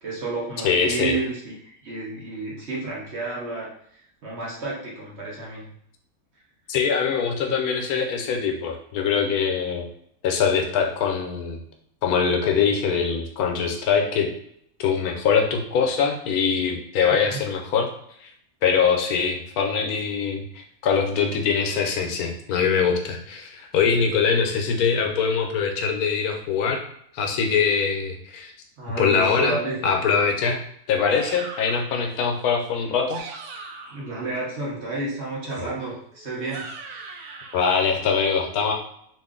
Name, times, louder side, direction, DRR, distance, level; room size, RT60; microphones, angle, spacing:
voice 1, 0.0-5.7 17.2-17.4 28.8-29.8 33.9-36.7, right 3 dB, 50° right, -5 dB, 1.2 m, -31 dB
voice 2, 0.6-1.1 6.7-9.9 10.2-11.6 12.0-14.3 14.8-17.9 18.2-18.3 18.6-26.8 27.1-28.5 29.0-29.6 29.8-30.6 30.9-33.2 37.5-38.7, left 6 dB, 75° left, 3 dB, 1.1 m, -23 dB
sound 1, 31.1-31.9 32.9-34.1 35.5-37.6, right 4 dB, 75° right, 1.0 m, -38 dB
3.0 x 2.5 x 3.6 m, 0.68 s
omnidirectional pair, 1.6 m